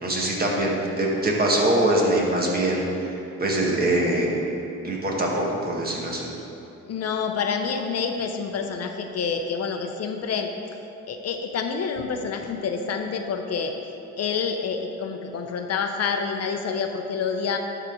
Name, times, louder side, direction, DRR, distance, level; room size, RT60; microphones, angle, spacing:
voice 1, 0.0-2.8 3.4-4.3 4.8-6.3, right 1 dB, 30° right, -2 dB, 1.6 m, -23 dB
voice 2, 6.9-10.5 11.1-13.7 14.2-17.6, left 5 dB, 55° left, 5 dB, 0.7 m, -28 dB
11.5 x 4.0 x 4.5 m, 2.9 s
cardioid pair, 90°, 30 cm